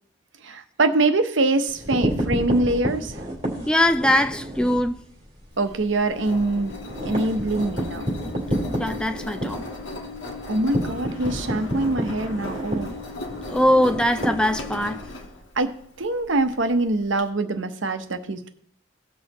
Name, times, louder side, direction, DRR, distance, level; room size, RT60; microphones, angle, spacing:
voice 1, 0.4-3.3 5.6-8.0 10.5-12.9 15.6-18.5, right 2 dB, 75° right, 0.9 m, -24 dB
sound 1, 1.7-4.9 5.3-5.4 5.7-5.8 6.2-15.0, right 1 dB, 30° right, 3.5 m, -29 dB
voice 2, 3.7-5.0 8.8-9.6 13.5-15.0, left 1 dB, 5° left, 0.3 m, -21 dB
Engine, 5.5-17.2, left 2 dB, 85° left, 1.4 m, -37 dB
17.5 x 6.3 x 3.0 m
head